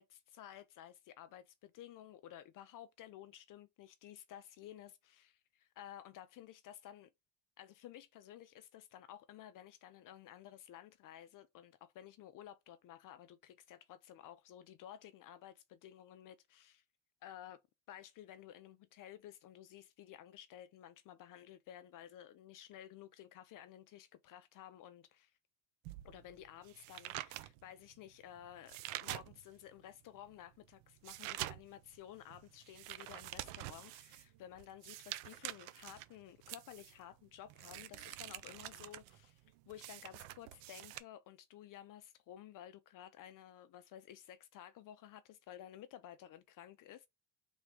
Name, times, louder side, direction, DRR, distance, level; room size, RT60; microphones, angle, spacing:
voice 1, 0.0-7.1 7.6-16.8 17.2-17.6 17.9-25.3 26.0-39.4 39.7-47.1, left 11 dB, 45° left, 0.5 m, -54 dB
sound 1, 25.8-29.7 30.1-41.0, right 16 dB, 75° right, 0.6 m, -47 dB
3.4 x 3.1 x 3.6 m
cardioid pair, 125°, 49 cm